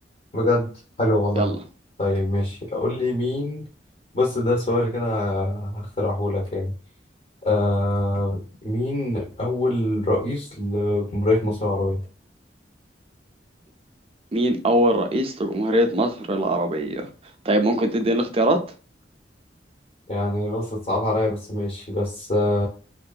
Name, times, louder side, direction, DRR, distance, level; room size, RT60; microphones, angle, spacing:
voice 1, 0.3-0.7 1.0-1.5 2.0-3.7 4.1-6.7 7.4-12.0 20.1-22.7, left 1 dB, 40° left, 0.7 m, -24 dB
voice 2, 14.3-17.1 17.4-18.6, right 1 dB, 35° right, 0.4 m, -22 dB
2.7 x 2.4 x 2.3 m
head